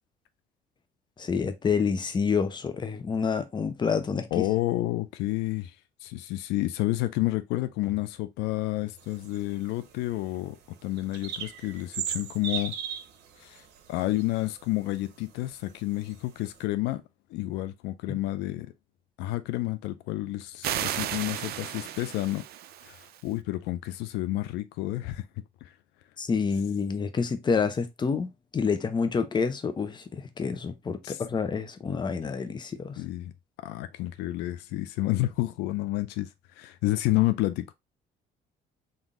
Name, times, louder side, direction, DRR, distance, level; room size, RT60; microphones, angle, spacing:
voice 1, 1.2-4.4 18.1-18.2 26.2-33.0, left 5 dB, 25° left, 0.7 m, -28 dB
voice 2, 4.3-5.7 6.0-10.6 10.8-12.7 13.4-13.6 13.9-17.0 17.3-18.7 19.2-22.4 22.8-25.3 25.6-25.7 31.0-31.2 33.0-33.3 33.6-36.3 36.6-37.7, left 17 dB, 90° left, 0.4 m, -30 dB
sound 1, 9.0-15.0 15.4-16.6, right 8 dB, 85° right, 0.9 m, -38 dB
sound 2, 20.6-23.2, right 11 dB, 65° right, 0.5 m, -34 dB
4.0 x 2.6 x 3.5 m
cardioid pair, 110°, 17 cm